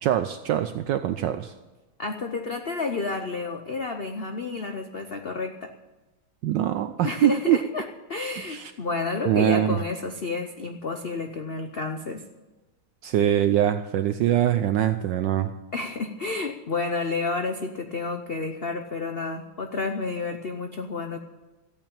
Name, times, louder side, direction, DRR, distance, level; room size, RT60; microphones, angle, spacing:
voice 1, 0.0-1.5 6.4-7.6 8.4-8.7 9.3-9.8 13.0-15.5, right 11 dB, 70° right, 10 dB, 1.2 m, -23 dB
voice 2, 2.0-5.7 7.0-12.2 15.7-21.2, left 3 dB, 90° left, 6 dB, 0.5 m, -30 dB
14.0 x 8.9 x 8.7 m, 1.1 s
omnidirectional pair, 2.2 m